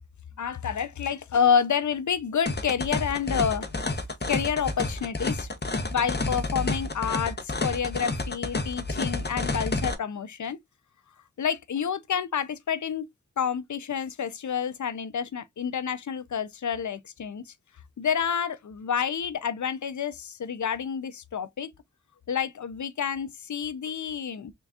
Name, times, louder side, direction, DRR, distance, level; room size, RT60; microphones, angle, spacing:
voice 1, 0.4-3.7 4.3-10.6 11.4-13.1 13.4-17.4 18.0-21.7 22.3-24.5, left 7 dB, 70° left, 0.5 m, -29 dB
sound 1, 2.5-10.0, left 2 dB, 35° left, 0.9 m, -30 dB
3.9 x 3.5 x 2.3 m
cardioid pair, 45°, 30 cm